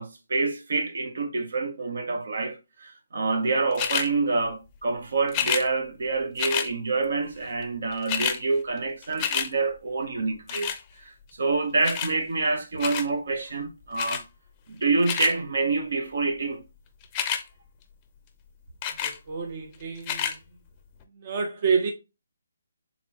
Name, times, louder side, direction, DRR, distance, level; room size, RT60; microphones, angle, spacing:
voice 1, 0.0-10.7 11.0-14.2 14.7-16.6, right 3 dB, 65° right, 1.0 m, -27 dB
sound 1, 3.8-4.1 5.3-5.7 6.4-6.7 7.6-7.7 7.9-8.4 8.8-9.5 10.5-10.8 11.8-12.1 12.8-13.1 14.0-14.2 14.8-15.3 17.0-17.4 18.8-19.2 20.0-20.4 21.0-21.1, left 9 dB, 20° left, 0.6 m, -28 dB
voice 2, 19.0-20.4 21.1-21.9, right 5 dB, 35° right, 0.7 m, -28 dB
4.1 x 3.6 x 2.9 m
hypercardioid pair, 160°, 0 cm